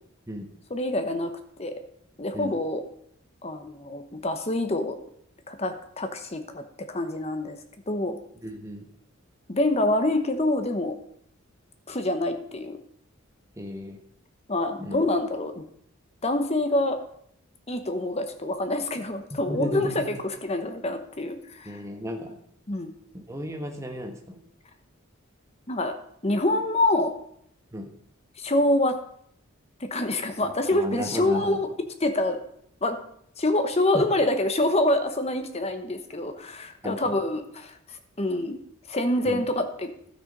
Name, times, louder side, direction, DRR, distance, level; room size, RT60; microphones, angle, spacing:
voice 1, 0.7-1.3 1.6-1.7 2.2-2.8 3.4-5.0 5.5-7.6 7.9-8.2 9.5-10.9 11.9-12.8 14.5-15.6 16.2-17.0 17.7-21.8 22.7-22.9 25.7-25.9 26.2-27.1 28.4-28.9 29.8-31.7 32.0-32.4 32.8-33.0 33.4-38.6 38.9-39.9, left 1 dB, 30° left, 7 dB, 1.0 m, -26 dB
voice 2, 8.4-8.9 13.5-14.0 14.8-15.0 19.3-20.2 21.6-22.4 23.1-24.4 27.7-27.9 30.7-31.6 33.9-34.0 36.8-37.1 39.2-39.4, left 1 dB, 15° right, 3 dB, 1.3 m, -34 dB
12.5 x 6.5 x 5.4 m, 0.69 s
head